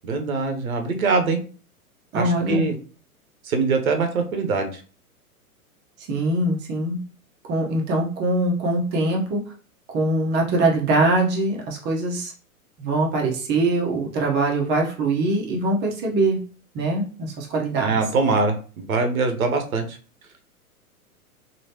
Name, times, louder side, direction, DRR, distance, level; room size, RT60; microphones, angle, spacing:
voice 1, 0.0-1.4 2.1-2.7 3.4-4.8 17.8-20.0, right 4 dB, 70° right, 5 dB, 0.9 m, -23 dB
voice 2, 2.1-2.7 6.1-7.0 7.5-9.4 9.9-12.3 12.8-16.4 16.7-18.0, right 2 dB, 25° right, 0 dB, 0.9 m, -22 dB
3.1 x 2.8 x 2.8 m, 0.39 s
figure-of-eight pair, 105°, 44 cm